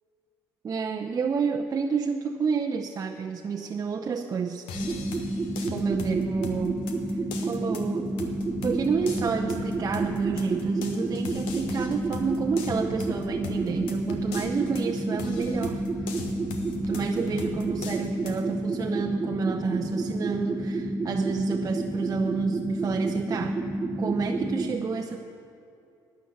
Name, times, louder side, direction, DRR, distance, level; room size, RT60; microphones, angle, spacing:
voice 1, 0.6-4.7 5.7-6.9 7.4-8.1 8.6-16.2 16.8-23.6 24.0-25.2, right 5 dB, 40° right, 2 dB, 0.7 m, -30 dB
sound 1, 4.7-18.4, left 3 dB, 85° left, 1.2 m, -40 dB
sound 2, 4.7-24.7, right 2 dB, 20° right, 1.6 m, -30 dB
11.5 x 9.6 x 7.2 m, 2.7 s
supercardioid pair, 65°, 9 cm